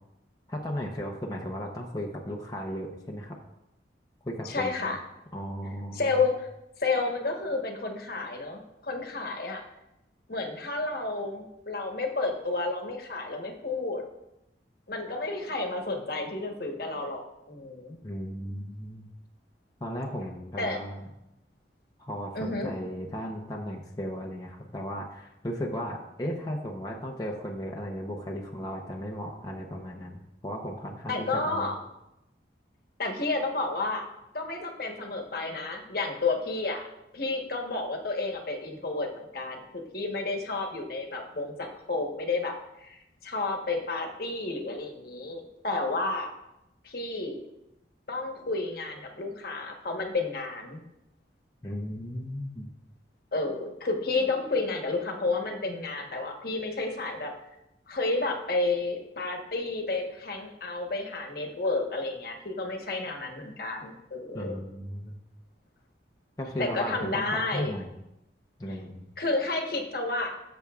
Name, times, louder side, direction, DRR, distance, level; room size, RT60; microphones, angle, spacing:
voice 1, 0.5-3.4 4.2-5.0 5.3-6.1 18.0-19.1 19.8-21.1 22.0-31.7 51.6-52.7 64.3-65.1 66.4-67.3 67.5-67.9 68.6-69.1, equal, 20° left, -1 dB, 0.7 m, -36 dB
voice 2, 4.4-5.0 5.9-6.5 6.8-9.6 10.3-14.0 14.9-18.0 20.6-20.8 22.3-22.7 31.1-31.8 33.0-34.1 34.3-36.8 37.1-46.3 46.8-47.4 48.1-50.8 53.3-57.3 57.9-64.6 66.6-67.7 69.2-70.3, left 3 dB, 55° left, 3 dB, 1.2 m, -31 dB
15.0 x 6.9 x 2.4 m, 0.89 s
head